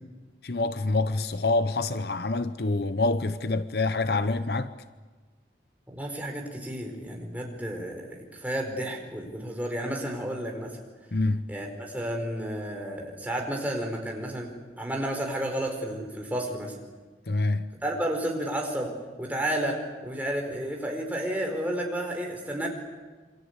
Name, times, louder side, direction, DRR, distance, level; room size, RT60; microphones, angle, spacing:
voice 1, 0.4-4.7 11.1-11.5 17.3-17.7, left 2 dB, 60° left, 0.9 m, -26 dB
voice 2, 5.9-10.8 11.5-16.7 17.8-18.9 19.2-22.7, right 1 dB, 10° right, 4.6 m, -31 dB
27.5 x 25.0 x 8.2 m
head